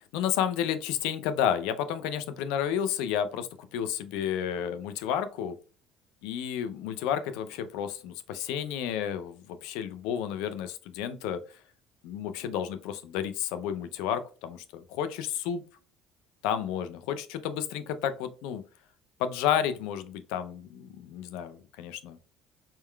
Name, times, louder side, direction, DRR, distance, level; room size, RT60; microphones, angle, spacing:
voice 1, 0.1-5.6 6.2-11.6 12.0-15.6 16.4-18.6 19.2-22.2, left 9 dB, 80° left, 11 dB, 0.5 m, -31 dB
4.2 x 3.7 x 2.3 m, 0.37 s
supercardioid pair, 75°, 0 cm